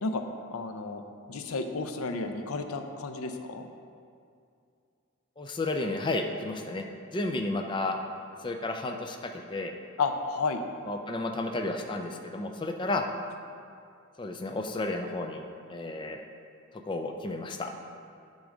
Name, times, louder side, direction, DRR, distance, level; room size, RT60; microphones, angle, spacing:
voice 1, 0.5-1.0 1.3-3.7 10.0-10.6, left 4 dB, 85° left, 6 dB, 0.6 m, -32 dB
voice 2, 5.4-6.8 7.1-8.0 8.4-9.7 10.9-13.0 14.2-16.2 16.9-17.8, left 2 dB, 20° left, 4 dB, 0.4 m, -32 dB
10.5 x 3.9 x 5.0 m, 2.4 s
head